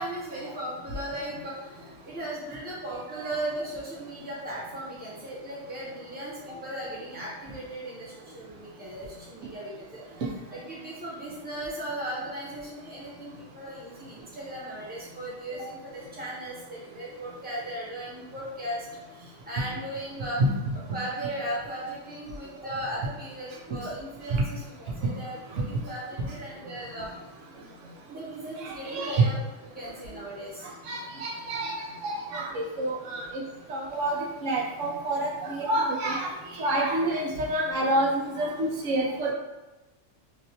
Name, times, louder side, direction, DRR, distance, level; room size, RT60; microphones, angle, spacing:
voice 1, 0.0-10.2 10.5-20.4 20.9-27.1 28.1-29.4 29.7-30.7, right 1 dB, 10° right, -7 dB, 0.8 m, -37 dB
voice 2, 28.6-29.3 30.9-33.4 33.7-34.1 34.4-39.3, right 1 dB, 80° right, -2 dB, 1.1 m, -28 dB
3.2 x 2.8 x 2.7 m, 1.1 s
omnidirectional pair, 1.3 m